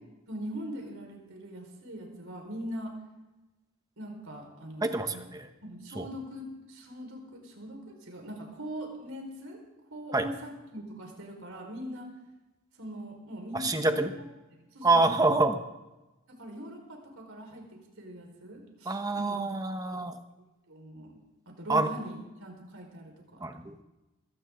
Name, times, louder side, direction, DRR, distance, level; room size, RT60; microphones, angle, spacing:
voice 1, 0.3-2.9 4.0-5.2 5.6-9.6 9.9-12.1 12.8-14.2 14.7-15.4 16.3-17.6 18.0-19.4 19.8-20.0 20.7-21.1 21.5-23.4, equal, 70° right, 1 dB, 4.8 m, -41 dB
voice 2, 4.8-5.5 5.9-6.0 10.1-10.2 13.5-14.1 14.8-15.6 18.9-20.1 21.7-21.9 23.4-23.8, right 3 dB, 15° right, 7 dB, 1.0 m, -26 dB
21.0 x 16.5 x 3.8 m, 1.0 s
head